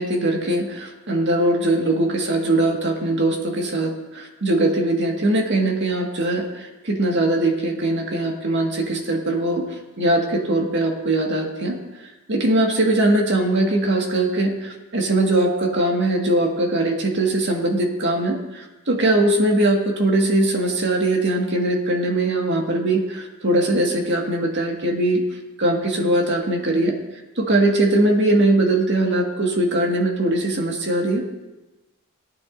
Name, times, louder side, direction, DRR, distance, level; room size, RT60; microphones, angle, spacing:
voice 1, 0.0-9.7 10.0-11.8 12.3-25.2 25.6-27.0 27.4-31.2, right 1 dB, 55° right, 1 dB, 1.9 m, -21 dB
17.5 x 11.0 x 2.7 m, 1.1 s
head